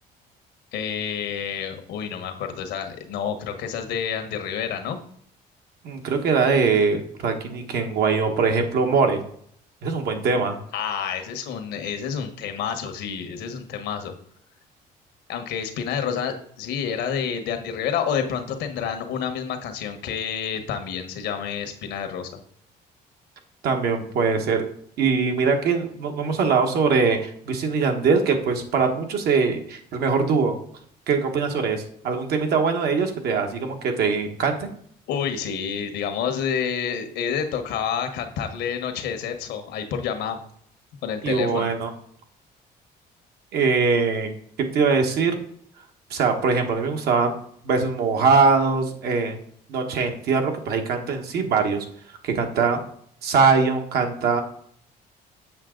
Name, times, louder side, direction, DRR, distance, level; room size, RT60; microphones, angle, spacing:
voice 1, 0.7-5.0 10.7-14.1 15.3-22.3 35.1-40.4 41.0-41.7, left 7 dB, 80° left, 6 dB, 1.2 m, -29 dB
voice 2, 5.8-9.2 9.8-10.6 23.6-24.6 25.0-30.5 31.1-34.7 41.2-41.9 43.5-44.3 44.7-45.4 46.1-47.4 47.6-49.4 49.7-51.8 52.2-52.8 53.2-54.4, right 5 dB, 70° right, 4 dB, 1.3 m, -22 dB
7.5 x 5.9 x 3.8 m, 0.64 s
cardioid pair, 110°, 17 cm